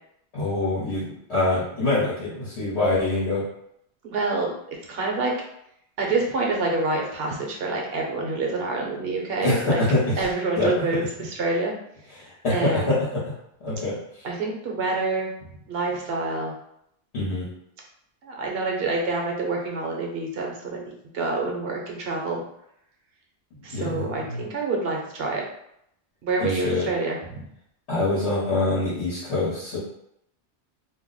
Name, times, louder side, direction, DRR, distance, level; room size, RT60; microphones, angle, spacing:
voice 1, 0.3-3.4 9.4-10.3 10.6-11.0 12.1-13.3 13.6-14.0 17.1-17.5 23.7-24.4 26.4-26.9 27.9-29.8, left 2 dB, 70° left, -7 dB, 1.2 m, -25 dB
voice 2, 4.0-4.5 4.9-5.3 6.0-9.8 10.2-11.7 12.5-13.0 14.2-15.3 15.7-16.5 18.2-20.8 21.1-22.4 23.6-25.4 26.2-27.4, right 3 dB, 65° right, 0 dB, 0.9 m, -27 dB
2.7 x 2.0 x 3.8 m, 0.75 s
omnidirectional pair, 1.2 m